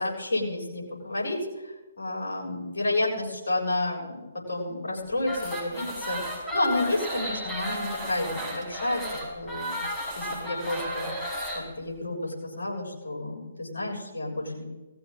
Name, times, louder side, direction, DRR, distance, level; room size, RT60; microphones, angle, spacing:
voice 1, 0.0-1.4 1.6-9.8 10.2-11.1 11.5-14.6, left 2 dB, 70° left, -4 dB, 7.3 m, -30 dB
sound 1, 5.2-11.6, equal, 10° left, 5.5 m, -33 dB
20.0 x 16.0 x 4.0 m, 1.2 s
figure-of-eight pair, 135°, 0 cm